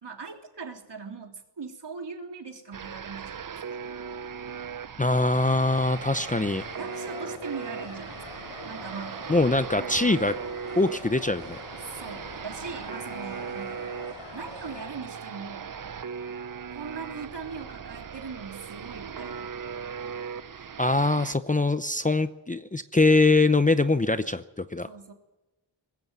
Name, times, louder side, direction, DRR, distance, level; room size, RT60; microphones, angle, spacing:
voice 1, 0.0-3.8 6.8-10.2 11.9-13.9 14.3-15.7 16.7-19.5 24.9-25.1, right 5 dB, 60° right, 2 dB, 3.4 m, -40 dB
sound 1, 2.7-21.3, right 6 dB, 45° right, 0.8 m, -38 dB
voice 2, 5.0-6.6 9.3-10.3 10.8-11.6 20.8-24.9, left 2 dB, 15° left, 11 dB, 0.7 m, -23 dB
sound 2, 5.3-14.9, left 3 dB, 85° left, 4.7 m, -44 dB
20.5 x 15.5 x 9.5 m, 1.0 s
wide cardioid pair, 90°, 47 cm